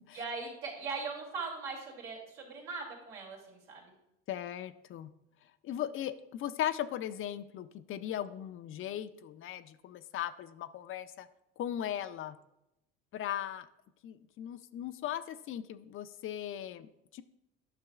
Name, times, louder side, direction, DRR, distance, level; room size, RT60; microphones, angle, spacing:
voice 1, 0.1-3.9, right 4 dB, 80° right, -2 dB, 2.6 m, -40 dB
voice 2, 4.3-5.1 5.6-11.3 11.6-12.4 13.1-13.7 14.0-17.2, left 11 dB, 45° left, 12 dB, 0.4 m, -38 dB
9.8 x 5.9 x 2.4 m, 0.86 s
supercardioid pair, 85°, 29 cm